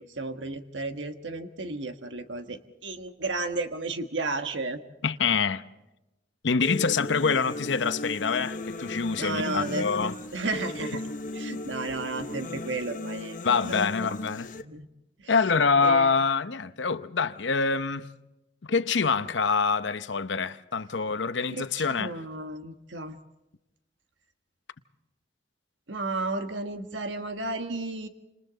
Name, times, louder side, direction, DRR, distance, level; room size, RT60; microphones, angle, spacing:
voice 1, 0.0-4.8 9.2-13.4 13.6-14.1 14.6-14.9 15.2-15.3 15.8-16.2 21.5-23.2 25.9-28.1, right 3 dB, 85° right, 1.4 m, -33 dB
voice 2, 5.0-5.6 6.4-10.1 13.4-14.5 15.3-18.1 18.6-22.1, left 5 dB, 80° left, 0.8 m, -25 dB
sound 1, 6.6-14.6, left 2 dB, 45° left, 1.0 m, -36 dB
29.5 x 27.0 x 4.0 m
head